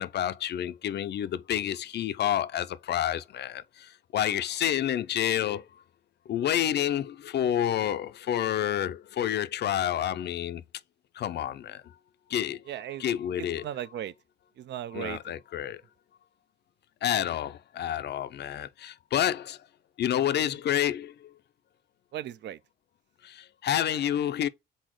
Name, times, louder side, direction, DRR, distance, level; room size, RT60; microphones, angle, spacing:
voice 1, 0.0-5.7 6.3-10.6 11.1-11.9 12.3-12.6 13.0-13.7 14.9-15.8 17.0-19.6 20.0-21.3 23.2-24.5, left 10 dB, 60° left, 0.5 m, -29 dB
voice 2, 12.7-13.0 13.4-14.1 14.6-15.3 22.1-22.6, right 11 dB, 65° right, 0.4 m, -37 dB
4.2 x 3.8 x 3.0 m
cardioid pair, 90°, 20 cm